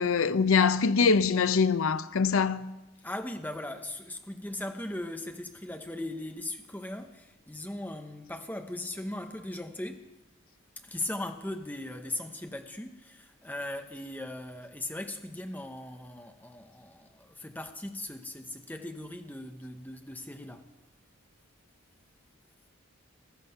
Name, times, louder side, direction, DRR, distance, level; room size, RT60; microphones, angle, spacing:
voice 1, 0.0-2.7, left 5 dB, 75° left, 0.6 m, -24 dB
voice 2, 3.0-10.1 10.8-20.7, left 1 dB, 10° left, 0.8 m, -39 dB
15.0 x 12.5 x 5.5 m
head